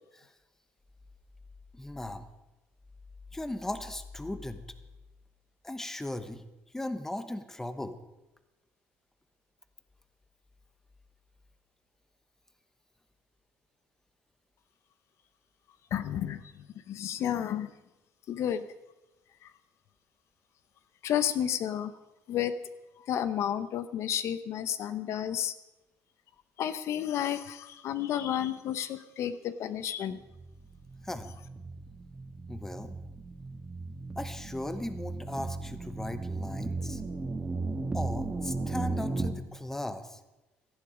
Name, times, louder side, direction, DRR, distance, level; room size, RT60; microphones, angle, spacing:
voice 1, 1.7-2.3 3.3-4.6 5.6-6.4 6.7-8.0 31.0-31.3 32.5-33.0 34.2-37.0 37.9-40.2, left 1 dB, 5° left, 10 dB, 1.0 m, -37 dB
voice 2, 15.9-17.7 18.3-18.7 19.4-19.5 21.0-21.9 22.3-22.5 23.1-25.5 26.6-30.2, left 10 dB, 60° left, 13 dB, 0.8 m, -31 dB
sound 1, 30.2-39.3, right 3 dB, 15° right, 1.7 m, -36 dB
18.0 x 13.5 x 5.0 m, 1.0 s
cardioid pair, 140°, 6 cm